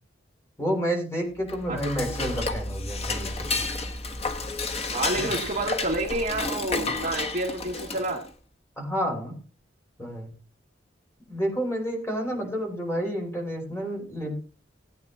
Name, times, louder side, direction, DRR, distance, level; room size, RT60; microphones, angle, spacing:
voice 1, 0.6-3.6 5.2-5.3 8.8-9.3 10.0-10.3 11.3-14.3, equal, 15° left, -1 dB, 5.0 m, -30 dB
Dishes pots and pans / Cutlery silverware, 1.4-8.3, left 3 dB, 35° left, 1.2 m, -31 dB
voice 2, 4.9-8.3 12.3-12.5, right 2 dB, 45° right, 0 dB, 2.1 m, -29 dB
19.0 x 8.9 x 2.9 m, 0.35 s
head